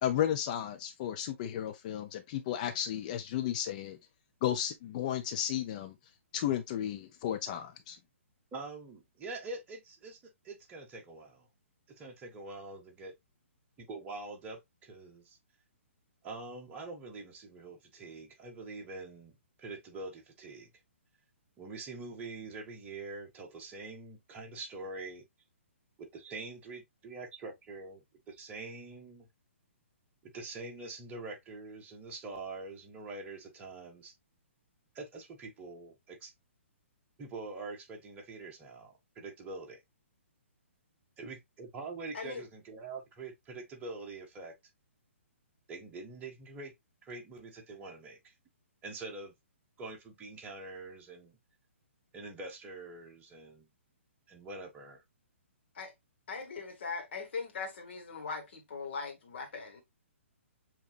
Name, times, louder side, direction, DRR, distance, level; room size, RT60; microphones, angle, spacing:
voice 1, 0.0-4.0 4.4-5.9 6.3-8.0, left 10 dB, 35° left, 0.6 m, -33 dB
voice 2, 8.5-11.5 11.9-13.1 13.8-15.4 16.2-20.7 21.6-25.2 26.0-29.3 30.3-34.1 34.9-36.3 37.2-39.8 41.2-44.5 45.7-46.7 47.0-48.3 48.8-49.3 49.8-51.4 52.1-53.7 54.3-55.0, right 3 dB, 20° right, 1.4 m, -45 dB
voice 3, 56.3-59.8, left 4 dB, 55° left, 1.7 m, -40 dB
6.9 x 3.0 x 2.4 m
figure-of-eight pair, 125°, 7 cm